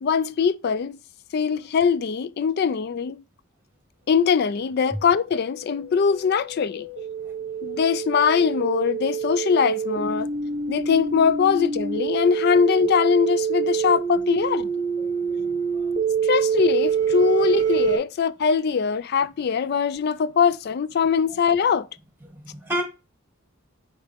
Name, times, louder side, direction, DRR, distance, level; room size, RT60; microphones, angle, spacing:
voice 1, 0.0-1.0 1.3-3.2 4.1-6.9 7.6-10.3 10.7-14.7 16.2-21.9, left 6 dB, 45° left, 0.3 m, -22 dB
sound 1, 4.7-18.0, right 6 dB, 40° right, 1.0 m, -26 dB
voice 2, 15.0-15.9 22.2-22.8, equal, 10° right, 1.8 m, -33 dB
6.6 x 4.5 x 3.5 m
head